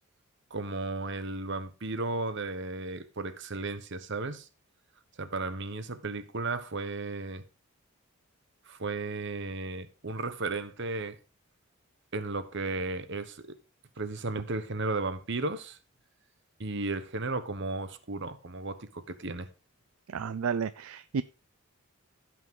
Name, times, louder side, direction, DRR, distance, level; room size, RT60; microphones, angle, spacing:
voice 1, 0.5-4.5 5.2-7.4 8.7-11.2 12.1-13.6 14.0-15.8 16.6-19.5, right 3 dB, 55° right, 1.1 m, -34 dB
voice 2, 20.1-21.2, right 6 dB, 70° right, 0.4 m, -31 dB
15.5 x 6.1 x 3.8 m
head